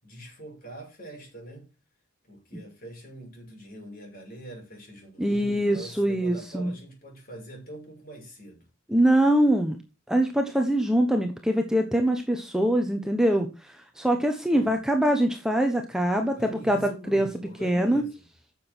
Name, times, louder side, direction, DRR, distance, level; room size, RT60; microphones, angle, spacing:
voice 1, 0.0-1.7 2.3-8.6 14.5-14.7 16.1-18.2, right 1 dB, 45° left, 0 dB, 6.5 m, -43 dB
voice 2, 5.2-6.7 8.9-9.8 10.1-16.4 16.7-16.8 17.1-17.3 17.6-18.0, right 1 dB, 5° right, 4 dB, 1.1 m, -23 dB
9.5 x 7.2 x 6.2 m, 0.30 s
head